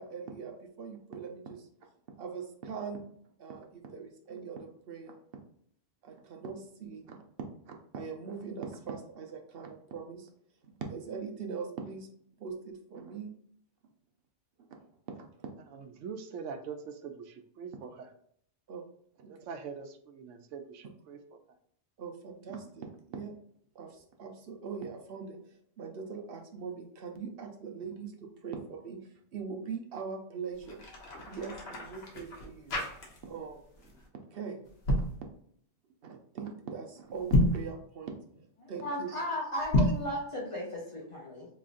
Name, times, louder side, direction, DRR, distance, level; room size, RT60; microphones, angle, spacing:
voice 1, 0.0-1.7 2.2-3.0 3.4-5.2 6.0-7.2 7.7-10.3 10.6-12.1 12.4-13.3 14.6-14.7 15.1-15.5 18.7-18.8 19.2-19.3 22.0-23.3 23.7-25.4 25.8-29.0 29.3-30.9 31.3-32.8 33.2-33.9 34.3-34.6 36.0-39.2 39.5-39.7, right 5 dB, 60° right, 3 dB, 0.8 m, -41 dB
voice 2, 15.7-18.1 19.3-21.4, right 6 dB, 90° right, 8 dB, 0.9 m, -43 dB
sound 1, 30.5-33.5 33.8-34.1 34.7-35.2 37.2-37.7 39.6-40.1, left 1 dB, 60° left, 1.2 m, -29 dB
voice 3, 38.6-41.5, left 1 dB, 30° left, -5 dB, 0.8 m, -36 dB
3.6 x 3.2 x 2.5 m, 0.65 s
omnidirectional pair, 1.2 m